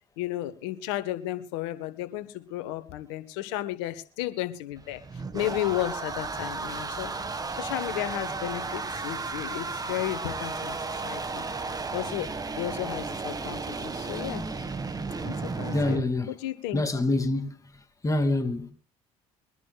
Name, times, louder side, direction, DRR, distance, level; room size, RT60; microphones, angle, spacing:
voice 1, 0.2-5.0 5.3-7.1 7.5-12.3 12.6-14.4 15.2-16.0 16.3-16.8, left 14 dB, 85° left, 1.4 m, -33 dB
sound 1, 4.8-16.0, right 3 dB, 25° right, 1.8 m, -34 dB
voice 2, 15.7-16.3 16.7-17.6 18.0-18.7, left 2 dB, 25° left, 2.6 m, -26 dB
24.0 x 11.0 x 2.4 m
hypercardioid pair, 65°, 14 cm